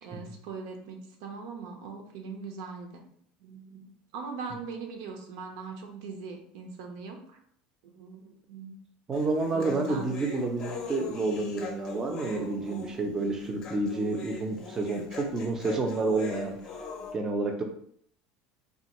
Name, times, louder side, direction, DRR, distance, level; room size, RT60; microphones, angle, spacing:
voice 1, 0.0-3.0 3.4-7.4 7.8-8.8 9.5-10.1, right 5 dB, 80° right, 3 dB, 0.6 m, -41 dB
Human voice, 9.1-17.1, left 5 dB, 30° left, 0.6 m, -42 dB
voice 2, 9.1-16.6 17.1-17.6, right 3 dB, 20° right, 4 dB, 0.5 m, -29 dB
3.4 x 2.3 x 2.9 m, 0.65 s
cardioid pair, 160°, 3 cm